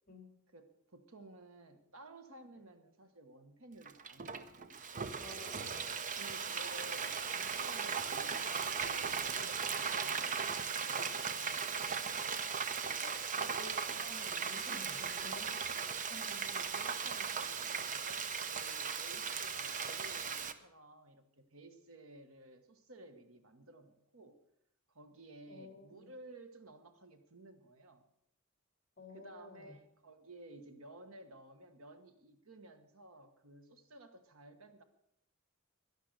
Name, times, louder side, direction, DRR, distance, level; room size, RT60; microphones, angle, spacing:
voice 1, 0.5-4.7 6.2-12.1 16.3-24.4 24.9-28.0 29.1-34.8, right 2 dB, 75° right, 8 dB, 1.4 m, -55 dB
Frying (food), 3.9-20.5, right 6 dB, 35° right, 0.7 m, -37 dB
voice 2, 5.2-6.0 13.0-15.7 16.1-16.2 25.5-26.1 29.0-29.7, left 2 dB, 40° left, 3 dB, 3.2 m, -52 dB
12.0 x 11.0 x 6.6 m, 0.75 s
head